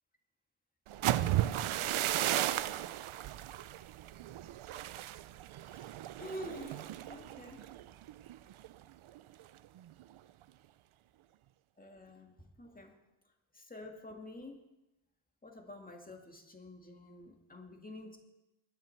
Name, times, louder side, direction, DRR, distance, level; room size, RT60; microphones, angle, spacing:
sound 1, 0.9-8.7 9.1-9.4 9.8-10.2, right 13 dB, 75° right, 0.7 m, -35 dB
voice 1, 5.6-7.7 11.8-13.0 13.5-14.6 15.4-18.2, left 1 dB, 15° left, 3 dB, 2.0 m, -48 dB
22.0 x 10.5 x 4.5 m, 0.97 s
wide cardioid pair, 130°, 50 cm